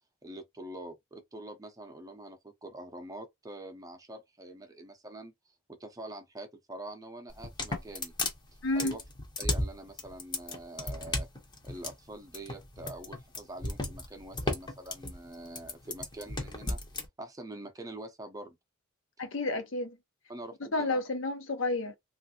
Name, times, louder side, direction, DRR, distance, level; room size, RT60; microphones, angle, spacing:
voice 1, 0.2-5.3 5.7-8.1 8.7-9.0 9.4-11.3 11.6-16.8 17.2-18.6 20.3-21.0, right 1 dB, 20° right, 0.6 m, -45 dB
sound 1, 7.3-17.1, left 2 dB, 20° left, 0.7 m, -34 dB
voice 2, 8.6-9.0 19.2-20.0 20.7-21.9, left 2 dB, 70° left, 0.8 m, -30 dB
3.2 x 2.5 x 2.7 m
head